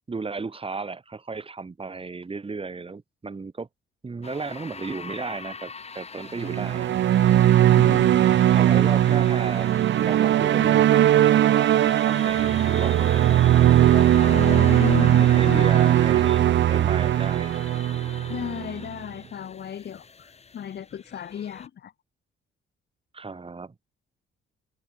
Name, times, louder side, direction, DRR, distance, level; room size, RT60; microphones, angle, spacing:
voice 1, 0.1-3.7 4.0-7.5 7.8-13.4 14.2-14.6 15.2-17.6 23.1-23.7, right 4 dB, 25° right, 5.0 m, -35 dB
sound 1, 4.2-21.7, left 4 dB, 30° left, 4.6 m, -41 dB
sound 2, 6.4-18.9, right 12 dB, 65° right, 1.0 m, -19 dB
voice 2, 7.8-8.1 14.3-15.9 18.3-21.9, left 9 dB, 55° left, 2.2 m, -33 dB
cardioid pair, 90°, 20 cm